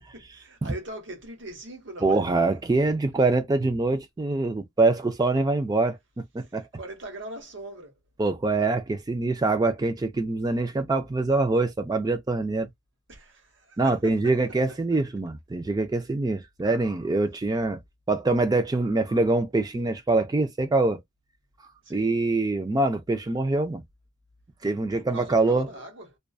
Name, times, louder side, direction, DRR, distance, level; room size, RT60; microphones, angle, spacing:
voice 1, 0.1-2.2 6.4-7.9 13.1-14.6 21.8-22.2 24.9-26.2, right 1 dB, 60° right, 1.0 m, -41 dB
voice 2, 2.0-6.6 8.2-12.7 13.8-17.8 18.1-21.0 21.9-23.8 24.6-25.7, right 3 dB, 20° right, 0.3 m, -24 dB
2.5 x 2.3 x 2.3 m
head